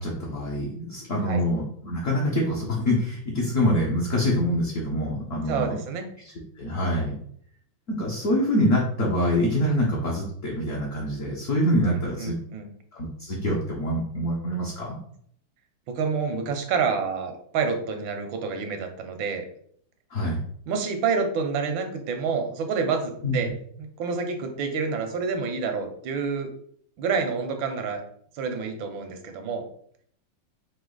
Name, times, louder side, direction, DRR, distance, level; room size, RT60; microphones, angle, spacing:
voice 1, 0.0-5.7 6.6-7.2 7.9-12.4 12.9-15.0 20.1-20.4 23.2-23.4, equal, 50° left, -3 dB, 1.1 m, -25 dB
voice 2, 5.5-6.1 11.8-12.7 15.9-19.4 20.7-23.5 23.8-26.5 27.0-28.0 28.3-29.6, right 5 dB, 80° right, 5 dB, 1.5 m, -28 dB
5.1 x 2.7 x 3.9 m, 0.64 s
omnidirectional pair, 2.1 m